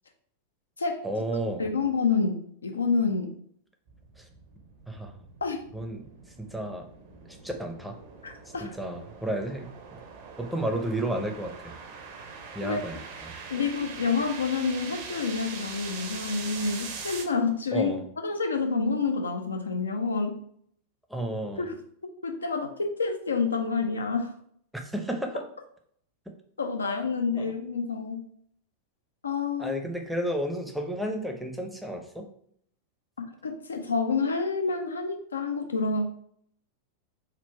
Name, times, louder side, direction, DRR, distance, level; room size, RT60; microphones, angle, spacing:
voice 1, 1.0-1.7 4.2-4.3 4.9-5.2 5.7-6.1 6.4-6.9 7.3-8.0 8.4-9.7 10.4-11.7 12.5-13.3 17.7-18.0 21.1-21.7 24.8-25.4 26.3-26.4 27.4-27.5 29.6-32.3, right 1 dB, ahead, 3 dB, 0.6 m, -32 dB
voice 2, 1.6-3.3 5.4-5.6 8.2-8.7 12.6-12.8 13.5-17.9 18.2-20.4 21.6-21.8 22.2-24.3 26.6-28.2 29.2-29.8 33.2-36.0, left 4 dB, 75° left, 4 dB, 0.6 m, -28 dB
sound 1, 3.9-17.2, right 5 dB, 50° right, 0.7 m, -42 dB
3.6 x 2.3 x 4.3 m, 0.65 s
figure-of-eight pair, 90°, 0 cm